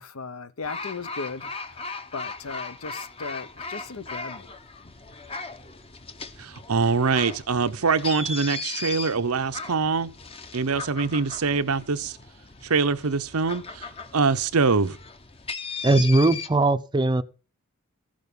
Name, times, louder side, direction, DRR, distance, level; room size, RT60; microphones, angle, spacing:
voice 1, 0.0-4.5, left 4 dB, 75° left, 0.8 m, -37 dB
sound 1, 0.6-16.5, left 4 dB, 25° left, 0.7 m, -38 dB
voice 2, 6.4-10.1 10.5-12.2 12.6-13.9 14.1-15.0, right 4 dB, 90° right, 0.8 m, -24 dB
voice 3, 15.8-17.2, right 2 dB, 20° right, 0.5 m, -20 dB
15.0 x 6.4 x 5.3 m
head